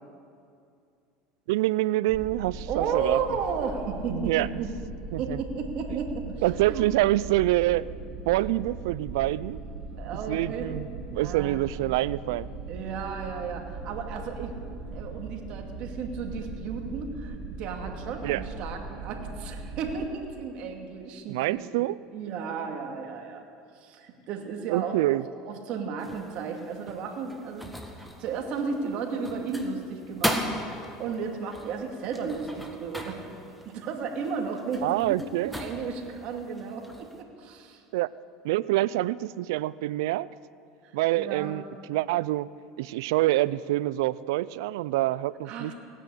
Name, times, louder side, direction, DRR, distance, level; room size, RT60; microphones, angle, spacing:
voice 1, 1.5-3.2 4.1-4.6 5.1-5.4 5.9-6.0 6.4-7.9 8.3-9.6 10.3-12.5 18.2-18.4 21.3-22.0 24.7-25.2 34.8-35.5 37.9-38.1 38.4-40.3 40.9-41.6 41.9-42.5 42.8-45.7, right 16 dB, 80° right, 19 dB, 0.4 m, -26 dB
sound 1, 2.1-20.1, right 3 dB, 30° right, 1.6 m, -39 dB
voice 2, 2.7-4.7 5.2-6.3 6.7-6.8 10.0-10.7 11.2-11.7 12.7-14.6 14.9-21.8 22.1-23.5 23.7-24.9 25.5-27.7 28.2-30.5 31.0-33.2 33.6-37.8 40.8-41.5 45.5-45.7, right 5 dB, 55° right, 3 dB, 2.4 m, -34 dB
sound 2, 26.0-37.2, equal, ahead, 1.7 m, -38 dB
17.5 x 9.9 x 8.4 m, 2.4 s
supercardioid pair, 100°, 2 cm